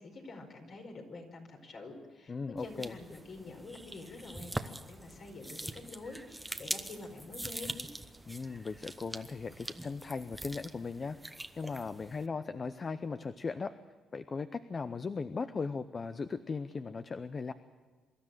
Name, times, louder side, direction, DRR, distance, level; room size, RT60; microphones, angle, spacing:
voice 1, 0.0-2.3 2.6-7.8, left 3 dB, 55° left, 3 dB, 4.7 m, -47 dB
voice 2, 2.3-2.9 8.3-11.2 11.6-13.7 14.1-17.5, left 4 dB, 35° left, 12 dB, 0.7 m, -38 dB
sound 1, 2.6-12.3, right 1 dB, 10° right, 1.0 m, -43 dB
24.5 x 13.0 x 9.1 m, 1.4 s
cardioid pair, 90°, 0 cm